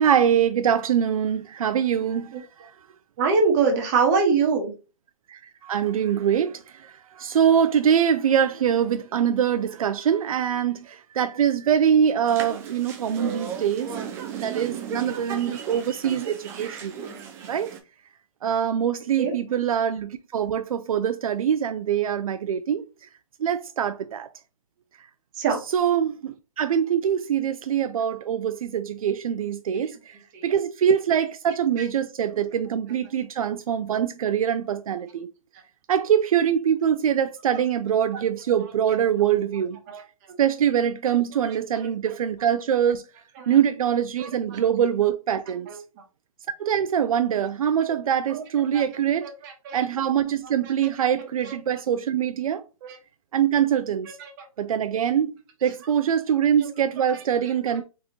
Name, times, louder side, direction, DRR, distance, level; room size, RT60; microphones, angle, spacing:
voice 1, 0.0-2.5 5.3-13.9 14.3-16.9 17.4-17.7 18.4-22.8 23.4-24.3 25.7-30.2 30.4-35.3 35.9-39.8 40.4-43.0 43.5-45.7 46.6-49.3 49.7-52.6 53.3-54.2 54.6-55.3 55.6-57.8, right 9 dB, 80° right, 0.4 m, -23 dB
voice 2, 3.2-4.7 19.2-19.3 25.4-25.6 29.7-29.8 30.3-30.5 31.8-31.9 32.3-32.4 39.9-40.0 41.7-41.9 43.4-43.6 44.2-44.6 45.7-45.8 48.3-48.4 48.7-48.9 49.2-49.8 50.6-50.7 51.4-51.5 52.8-53.0 54.1-54.3 56.6-56.7, right 4 dB, 30° right, 1.2 m, -24 dB
sound 1, 12.3-17.8, right 7 dB, 15° right, 0.4 m, -35 dB
3.9 x 3.5 x 2.9 m
hypercardioid pair, 155°, 18 cm